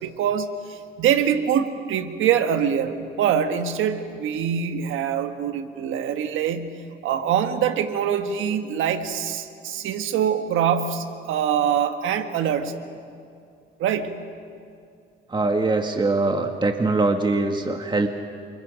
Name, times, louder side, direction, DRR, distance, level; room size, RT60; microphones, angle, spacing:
voice 1, 0.0-12.8 13.8-14.2, right 8 dB, 85° right, 7 dB, 1.6 m, -24 dB
voice 2, 15.3-18.1, right 3 dB, 25° right, 5 dB, 1.6 m, -22 dB
28.5 x 27.5 x 5.2 m, 2.5 s
cardioid pair, 90°, 20 cm